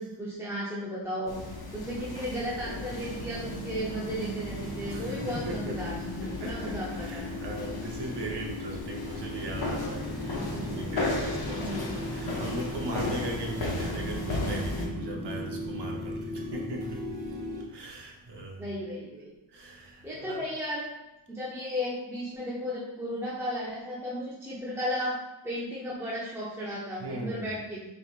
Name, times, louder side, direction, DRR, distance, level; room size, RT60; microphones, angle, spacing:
voice 1, 0.0-1.4 1.7-5.9 6.3-7.3 10.3-11.0 11.5-12.3 18.6-19.3 20.0-20.9 21.3-25.2 25.4-27.9, equal, 5° right, -7 dB, 0.6 m, -35 dB
sound 1, 1.3-14.9, left 2 dB, 50° left, 0.8 m, -36 dB
sound 2, 2.8-17.6, left 1 dB, 85° right, 1.5 m, -38 dB
voice 2, 4.9-5.8 6.2-18.6 19.5-20.4 27.0-27.5, right 1 dB, 60° right, 0 dB, 0.9 m, -39 dB
4.4 x 3.6 x 2.4 m, 0.94 s
wide cardioid pair, 105°, 48 cm